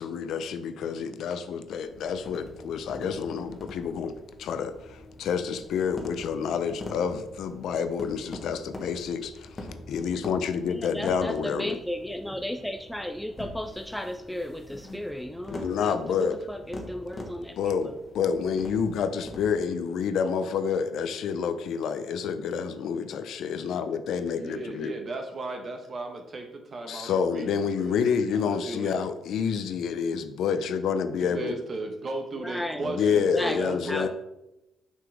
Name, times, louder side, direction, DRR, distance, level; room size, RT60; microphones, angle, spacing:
voice 1, 0.0-11.8 15.5-16.4 17.6-24.9 26.9-31.5 32.8-34.1, left 6 dB, 75° left, 10 dB, 0.6 m, -28 dB
sound 1, 1.7-19.5, left 2 dB, 30° left, 1.4 m, -44 dB
voice 2, 10.7-17.6 32.4-34.1, left 1 dB, 5° left, 7 dB, 0.4 m, -35 dB
voice 3, 24.3-28.0 28.3-29.0 31.2-34.1, right 2 dB, 45° right, 4 dB, 1.3 m, -36 dB
6.0 x 5.7 x 3.6 m, 0.91 s
cardioid pair, 90°, 0 cm